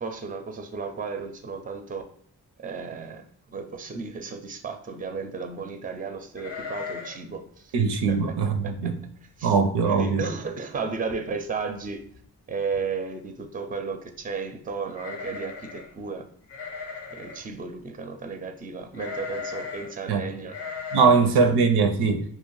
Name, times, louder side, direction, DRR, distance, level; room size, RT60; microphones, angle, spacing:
voice 1, 0.0-2.1 2.6-7.7 8.1-8.3 8.6-8.7 9.4-9.5 9.9-12.0 12.5-16.2 17.1-20.6 21.1-21.5, right 5 dB, 20° right, 0.4 m, -34 dB
sound 1, 6.4-7.3 7.6-7.7 8.1-8.4 9.0-9.1 9.4-9.9 10.2-10.3 11.4-11.5 11.8-12.3 14.9-15.9 16.5-17.5 18.9-19.9 20.5-21.1, left 5 dB, 80° left, 0.6 m, -37 dB
voice 2, 7.7-9.0 9.4-10.2 20.1-20.2 20.9-22.2, right 5 dB, 80° right, 0.5 m, -21 dB
2.5 x 2.0 x 3.0 m
cardioid pair, 40°, 40 cm